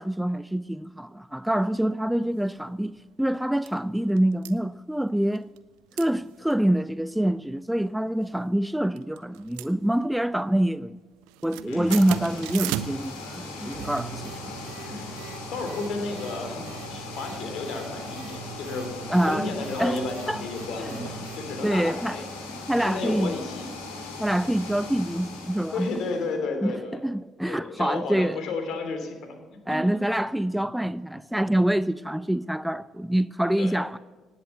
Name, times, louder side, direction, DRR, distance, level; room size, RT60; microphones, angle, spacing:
voice 1, 0.0-2.9 3.2-5.5 6.0-11.0 11.4-14.5 19.1-19.5 19.8-20.4 20.8-21.1 21.6-22.2 22.5-23.3 24.2-25.9 26.6-26.7 27.0-28.4 29.7-34.0, right 1 dB, 5° right, 0.4 m, -26 dB
sound 1, 2.4-2.5 3.0-3.1 3.3-3.7 4.2-4.5 5.4-5.7 5.9-6.1 6.4-6.5 7.0-7.4 8.1-8.6 9.0-10.3 10.6-10.9 11.2-21.7, right 12 dB, 70° right, 0.5 m, -39 dB
sound 2, 11.7-26.3, left 3 dB, 75° left, 2.6 m, -39 dB
voice 2, 11.7-12.0 13.5-13.9 14.8-22.2 22.8-23.7 25.7-27.0 27.5-29.3 29.7-29.8 33.6-33.7, left 3 dB, 60° left, 3.0 m, -33 dB
18.5 x 8.0 x 8.2 m
figure-of-eight pair, 45°, 0 cm